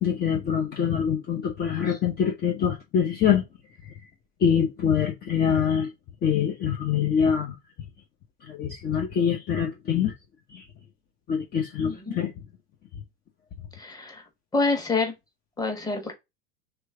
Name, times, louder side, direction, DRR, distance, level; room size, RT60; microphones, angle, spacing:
voice 1, 0.0-3.4 3.8-4.0 4.4-5.9 6.2-7.6 8.4-10.1 10.5-10.7 11.3-12.3, left 8 dB, 30° left, 0.9 m, -24 dB
voice 2, 11.8-12.2 13.8-14.2 14.5-15.1 15.6-16.1, left 3 dB, 10° left, 1.5 m, -27 dB
3.4 x 3.1 x 4.7 m
hypercardioid pair, 100°, 31 cm